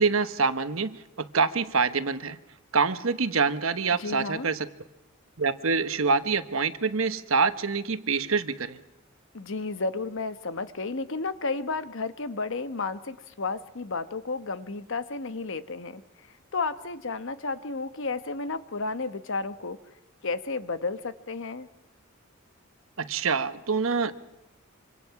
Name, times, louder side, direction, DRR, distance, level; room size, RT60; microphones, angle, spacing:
voice 1, 0.0-2.4 2.7-4.7 5.4-8.8 23.0-24.1, right 4 dB, 70° right, 11 dB, 1.2 m, -26 dB
voice 2, 3.9-4.5 9.3-16.0 16.5-19.8 20.2-21.7, left 3 dB, 65° left, 11 dB, 1.2 m, -32 dB
26.0 x 25.5 x 5.9 m, 0.95 s
head